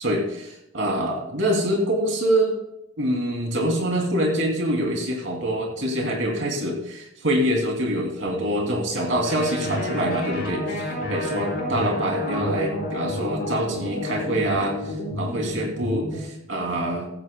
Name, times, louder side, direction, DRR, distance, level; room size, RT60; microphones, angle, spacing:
voice 1, 0.0-2.5 3.0-17.1, right 1 dB, 65° right, 1 dB, 2.9 m, -25 dB
sound 1, 9.2-16.2, left 1 dB, 45° left, 5.4 m, -30 dB
16.0 x 13.0 x 2.3 m, 0.85 s
head